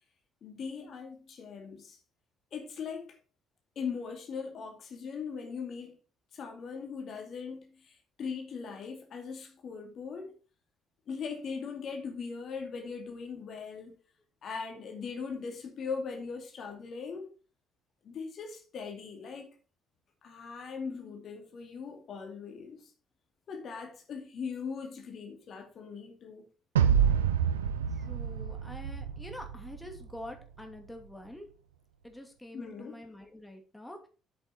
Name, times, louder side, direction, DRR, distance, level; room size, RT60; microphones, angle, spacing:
voice 1, 0.4-2.0 2.5-3.2 3.8-6.0 6.3-10.4 11.1-14.0 14.4-17.3 18.0-19.5 20.2-22.9 23.5-26.5 32.5-33.0, left 5 dB, 50° left, 2.2 m, -40 dB
sound 1, 26.8-30.0, right 8 dB, 85° right, 0.6 m, -28 dB
voice 2, 27.9-31.5 32.0-34.1, left 1 dB, 10° left, 2.6 m, -46 dB
8.0 x 7.7 x 4.3 m
figure-of-eight pair, 50°, 0 cm